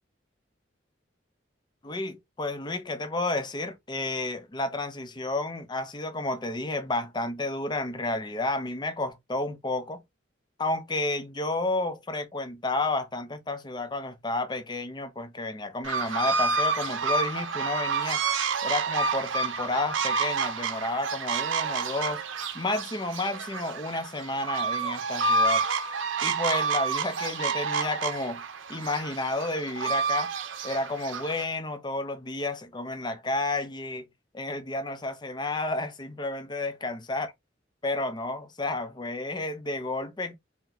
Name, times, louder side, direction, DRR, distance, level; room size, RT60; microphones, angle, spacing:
voice 1, 1.8-10.0 10.6-18.2 18.6-22.2 22.5-25.7 26.2-28.4 28.7-30.3 30.6-34.1 34.3-37.3 37.8-40.3, left 2 dB, 25° left, 0.6 m, -31 dB
sound 1, 15.8-31.4, right 4 dB, 85° right, 0.5 m, -29 dB
3.7 x 2.2 x 2.9 m
head